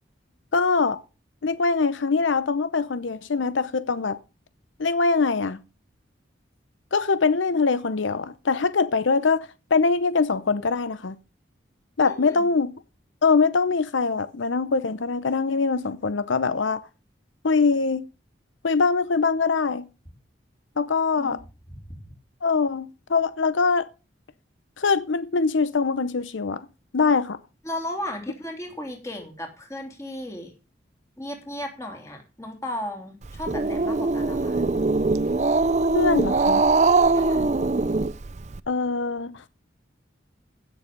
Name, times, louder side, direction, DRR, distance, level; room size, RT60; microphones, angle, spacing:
voice 1, 0.5-1.0 1.4-4.2 4.8-5.6 6.9-11.2 12.0-12.7 13.2-16.8 17.4-18.0 18.6-19.8 20.8-21.4 22.4-23.9 24.8-26.7 26.9-27.4 35.9-36.7 38.7-39.5, left 4 dB, 80° left, 0.7 m, -23 dB
voice 2, 12.0-12.5 21.2-21.4 21.7-21.8 27.6-30.5 31.2-34.6 37.1-37.5, left 1 dB, 15° left, 3.3 m, -35 dB
Growling, 33.2-38.6, right 3 dB, 35° right, 0.5 m, -22 dB
16.0 x 7.1 x 5.2 m
head